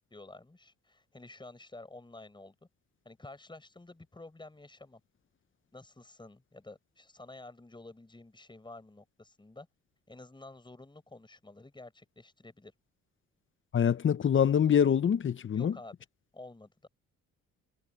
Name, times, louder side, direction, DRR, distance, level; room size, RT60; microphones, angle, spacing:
voice 1, 0.1-2.5 3.0-5.0 5.7-9.7 10.1-12.7 15.5-15.9 16.3-16.9, left 2 dB, 15° left, 6.6 m, -50 dB
voice 2, 13.7-15.7, left 8 dB, 40° left, 0.9 m, -25 dB
cardioid pair, 90°, 30 cm